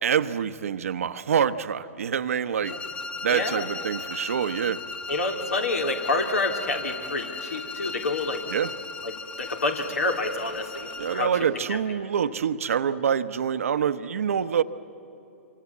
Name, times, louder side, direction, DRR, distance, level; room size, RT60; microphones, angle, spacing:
voice 1, 0.0-2.7 3.2-4.8 8.5-8.7 11.0-14.6, right 8 dB, 70° right, 11 dB, 1.0 m, -26 dB
sound 1, 2.6-11.4, left 3 dB, 20° left, 1.5 m, -37 dB
voice 2, 3.3-3.7 5.1-8.4 9.0-9.1 9.4-11.3 11.7-11.8, left 2 dB, 80° left, 3 dB, 3.5 m, -28 dB
26.5 x 24.5 x 8.6 m, 3.0 s
hypercardioid pair, 120°, 8 cm